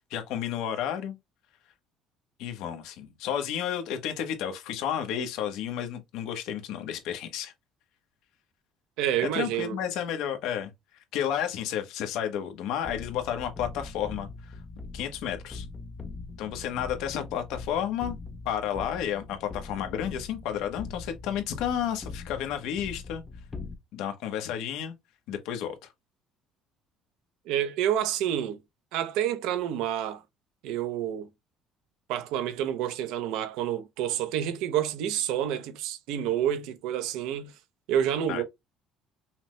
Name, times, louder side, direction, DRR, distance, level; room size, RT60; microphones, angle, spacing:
voice 1, 0.1-1.2 2.4-7.5 9.3-10.7 11.1-14.6 14.9-15.7 16.4-18.2 18.4-23.2 23.9-25.0 25.3-25.9 38.3-38.4, left 9 dB, 75° left, 1.0 m, -31 dB
voice 2, 9.0-9.8 27.5-28.6 28.9-30.2 30.6-31.3 32.1-37.5 37.9-38.4, right 10 dB, 85° right, 0.6 m, -28 dB
sound 1, 12.8-23.8, left 3 dB, 20° left, 0.5 m, -42 dB
5.6 x 2.1 x 3.1 m
cardioid pair, 145°, 0 cm